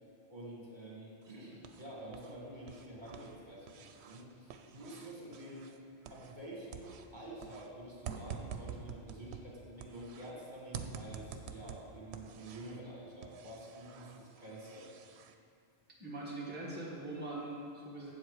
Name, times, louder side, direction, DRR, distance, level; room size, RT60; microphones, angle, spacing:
voice 1, 0.3-5.8 6.1-14.9, right 1 dB, 45° right, -5 dB, 2.0 m, -48 dB
sound 1, 1.2-2.3 2.6-6.5 6.7-10.3 10.7-12.8 13.2-15.3, right 7 dB, 85° right, 0.9 m, -48 dB
voice 2, 16.0-18.1, right 2 dB, 10° right, -6 dB, 1.3 m, -42 dB
8.0 x 7.4 x 4.7 m, 2.4 s
omnidirectional pair, 1.1 m